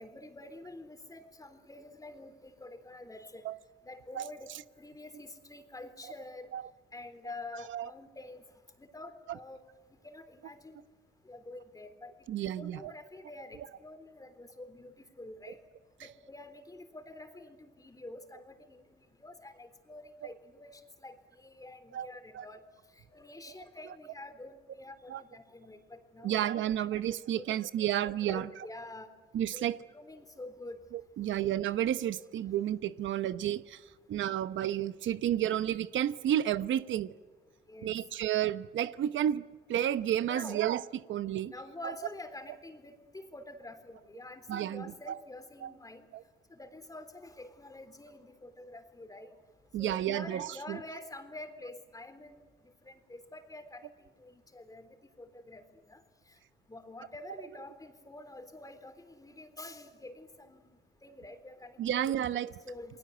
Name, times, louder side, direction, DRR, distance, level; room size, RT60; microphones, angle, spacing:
voice 1, 0.0-3.4 3.8-4.5 4.8-6.5 6.9-8.4 8.8-9.6 10.0-10.8 11.2-15.6 16.0-22.6 23.1-26.4 26.9-27.0 27.4-27.9 28.2-29.1 29.5-29.7 29.9-30.8 37.7-37.9 40.2-40.6 41.5-46.0 46.5-49.3 49.8-52.5 52.9-54.9 55.2-56.0 56.7-60.7 61.0-63.0, left 2 dB, 15° left, 8 dB, 3.6 m, -47 dB
voice 2, 12.3-12.9 21.9-22.1 22.3-22.4 25.1-25.2 26.2-28.5 29.3-29.8 31.2-37.1 37.8-39.4 39.7-40.8 41.1-41.5 44.5-45.2 45.6-45.7 46.1-46.2 49.7-50.8 61.8-62.5, right 11 dB, 75° right, 13 dB, 0.9 m, -31 dB
29.5 x 20.5 x 8.0 m, 1.4 s
cardioid pair, 90°, 20 cm